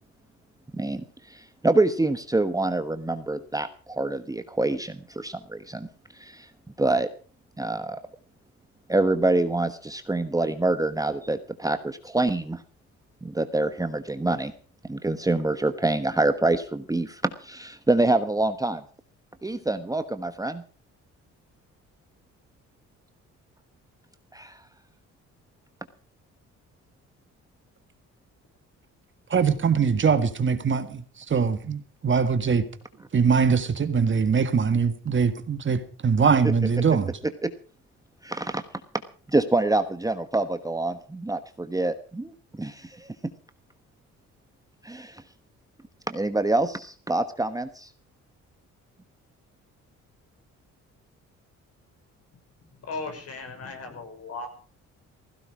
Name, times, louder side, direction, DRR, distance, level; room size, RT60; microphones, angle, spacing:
voice 1, 0.7-5.9 6.1-6.5 6.8-7.1 7.6-8.0 8.9-12.6 13.2-14.5 14.9-18.8 19.4-20.6 24.3-24.6 37.4-37.5 38.2-38.6 39.3-43.1 44.8-45.2 46.1-47.9, right 2 dB, 10° right, 1.2 m, -26 dB
voice 2, 29.3-32.6 33.1-37.1, right 6 dB, 40° right, 1.7 m, -22 dB
voice 3, 52.8-54.5, left 3 dB, 55° left, 5.7 m, -36 dB
16.0 x 16.0 x 4.9 m
cardioid pair, 90°, 30 cm